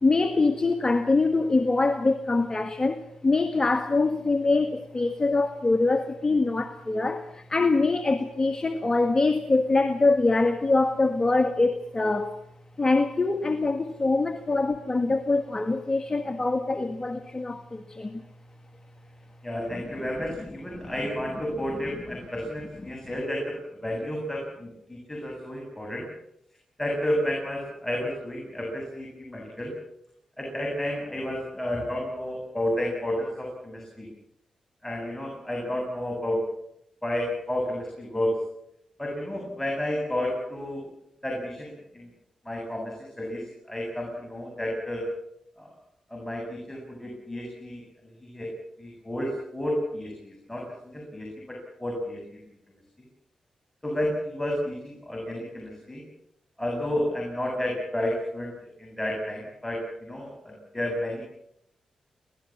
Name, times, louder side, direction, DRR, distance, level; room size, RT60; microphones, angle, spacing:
voice 1, 0.0-12.4 12.8-18.2 20.8-20.9, left 3 dB, 30° left, 7 dB, 1.9 m, -24 dB
voice 2, 19.4-26.1 26.8-29.7 30.4-34.1 34.8-36.4 37.0-38.4 39.0-40.9 41.2-42.1 42.4-45.1 45.6-45.7 46.1-47.8 48.2-48.5 48.8-52.2 53.8-56.0 56.6-61.2, left 1 dB, 10° left, 0 dB, 7.9 m, -31 dB
24.5 x 18.0 x 7.5 m, 0.77 s
cardioid pair, 55°, 2 cm